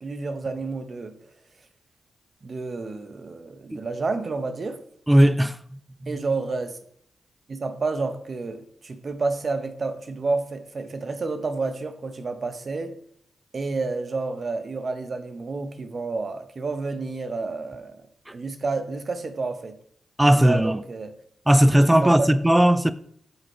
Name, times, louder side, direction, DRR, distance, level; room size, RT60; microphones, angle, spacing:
voice 1, 0.0-1.1 2.4-4.8 6.1-6.8 7.5-12.9 13.5-18.0 18.3-19.8 20.4-21.1 22.0-22.3, right 3 dB, 50° right, 0.9 m, -30 dB
voice 2, 5.1-5.6 6.0-6.2 20.2-20.8 21.5-22.9, right 1 dB, 10° right, 0.5 m, -17 dB
6.6 x 4.3 x 4.6 m
supercardioid pair, 50°, 0 cm